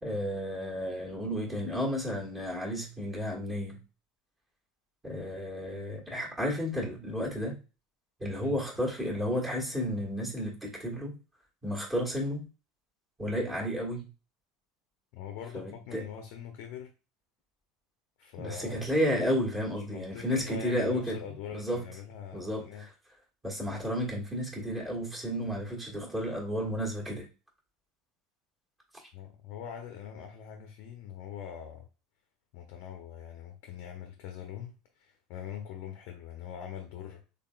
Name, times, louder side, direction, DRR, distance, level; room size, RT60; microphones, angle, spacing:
voice 1, 0.0-3.8 5.0-7.6 8.2-11.2 11.6-12.5 13.2-14.1 15.5-16.0 18.4-21.2 21.5-21.8 22.3-22.9 23.4-27.3, equal, 15° right, 1.5 m, -32 dB
voice 2, 15.1-16.9 18.2-19.0 19.9-22.9 29.1-31.9 32.5-37.2, left 9 dB, 55° left, 0.6 m, -43 dB
3.7 x 3.6 x 2.2 m
figure-of-eight pair, 70°, 0 cm